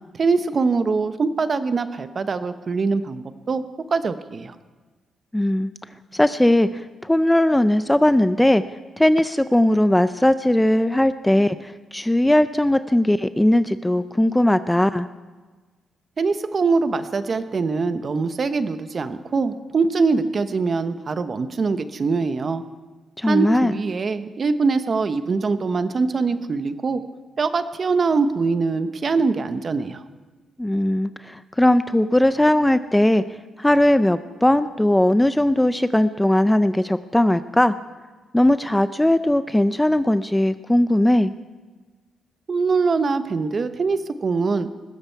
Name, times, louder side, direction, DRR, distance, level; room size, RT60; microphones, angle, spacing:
voice 1, 0.1-3.6 3.9-4.5 16.2-22.6 23.2-27.0 27.4-30.0 42.5-44.7, right 4 dB, 40° right, 10 dB, 0.9 m, -23 dB
voice 2, 5.3-5.7 6.1-8.6 9.0-15.1 23.2-23.7 30.6-33.2 33.6-37.7 38.3-41.3, left 1 dB, 5° left, 12 dB, 0.5 m, -19 dB
19.5 x 16.0 x 4.6 m, 1.3 s
cardioid pair, 110°, 0 cm